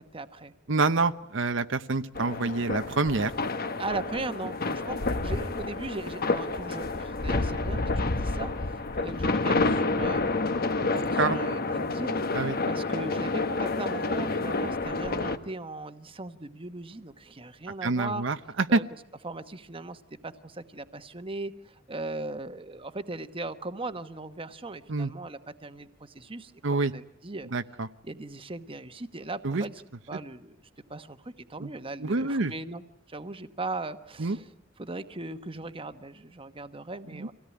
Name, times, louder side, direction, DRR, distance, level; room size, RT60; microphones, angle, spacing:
voice 1, 0.0-0.5 3.8-18.3 18.7-18.8 19.2-27.5 28.0-29.8 30.1-30.6 30.9-32.8 33.1-34.5 34.8-37.3, right 2 dB, 25° right, 10 dB, 1.1 m, -39 dB
voice 2, 0.7-3.3 10.8-11.4 12.3-12.6 17.8-18.8 24.9-25.1 26.6-26.9 27.5-27.9 29.4-29.6 31.6-31.7 32.0-32.5 34.2-34.4 37.1-37.3, right 3 dB, 65° right, 10 dB, 0.9 m, -27 dB
sound 1, 2.2-15.4, left 3 dB, 50° left, 1.2 m, -29 dB
25.5 x 17.0 x 9.8 m, 0.79 s
head